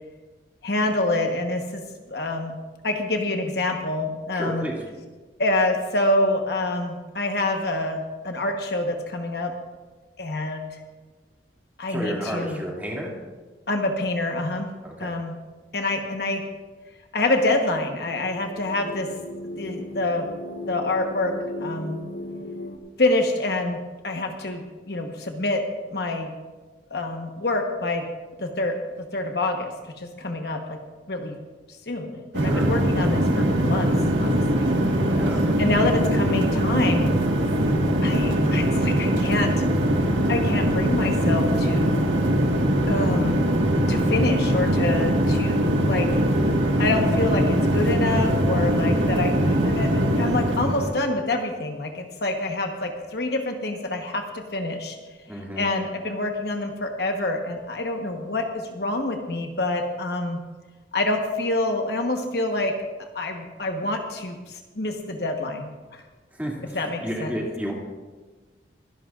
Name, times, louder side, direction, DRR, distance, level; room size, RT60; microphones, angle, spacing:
voice 1, 0.6-2.6 2.8-4.7 5.4-9.5 10.2-10.7 11.8-12.6 13.7-14.7 15.0-15.4 15.7-16.4 17.1-19.1 19.6-20.3 20.7-22.0 23.0-23.8 24.0-25.6 25.9-26.3 26.9-28.1 28.4-30.8 31.1-31.4 31.9-33.9 34.2-34.7 35.6-37.1 38.0-39.6 40.3-42.0 42.9-43.4 43.9-46.2 46.8-55.0 55.6-60.4 60.9-62.7 63.1-66.0 66.6-67.4, left 2 dB, 60° left, 4 dB, 1.1 m, -26 dB
voice 2, 4.3-4.8 11.9-13.1 15.0-15.1 32.4-32.7 35.2-35.4 55.3-55.7 66.4-67.7, equal, 10° right, -3 dB, 2.4 m, -31 dB
sound 1, 17.6-22.8, left 1 dB, 80° left, 1.3 m, -37 dB
sound 2, 32.3-50.9, right 1 dB, 85° right, 1.6 m, -22 dB
24.0 x 11.5 x 2.5 m, 1.3 s
head